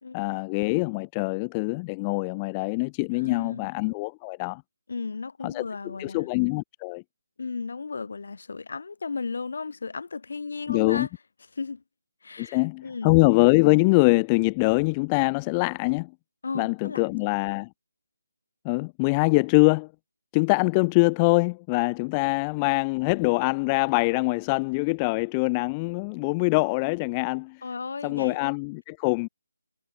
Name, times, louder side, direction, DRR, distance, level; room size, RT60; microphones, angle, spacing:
voice 1, 0.1-4.6 5.4-7.0 10.7-11.1 12.4-16.1 16.5-17.7 18.6-19.9 20.3-27.6 28.0-29.3, left 29 dB, 15° left, 0.5 m, -24 dB
voice 2, 3.1-3.7 4.9-6.3 7.4-11.1 11.6-11.8 12.2-13.1 16.4-17.0 27.6-28.4, left 4 dB, 50° left, 3.7 m, -35 dB
hypercardioid pair, 175°, 0 cm